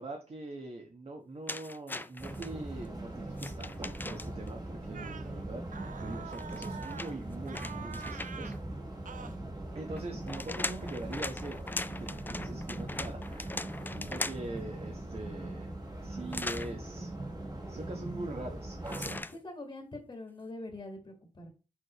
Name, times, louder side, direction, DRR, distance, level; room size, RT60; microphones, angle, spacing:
voice 1, 0.0-5.6 6.0-8.5 9.7-11.6 12.1-13.6 14.1-15.7 16.0-17.1 17.7-19.4, right 2 dB, 45° right, 2 dB, 1.3 m, -42 dB
sound 1, 1.5-2.5 3.4-4.5 6.3-8.6 10.0-14.6 16.3-16.7 18.9-19.4, left 2 dB, 15° left, 0.4 m, -39 dB
sound 2, 2.2-19.2, right 1 dB, 30° right, 1.8 m, -41 dB
sound 3, 4.9-5.3 5.7-7.2 7.5-8.6 9.1-9.4, right 6 dB, 75° right, 0.7 m, -45 dB
voice 2, 13.9-14.3 19.3-21.5, left 2 dB, 35° left, 3 dB, 1.7 m, -44 dB
6.4 x 5.7 x 3.1 m, 0.31 s
wide cardioid pair, 155°, 14 cm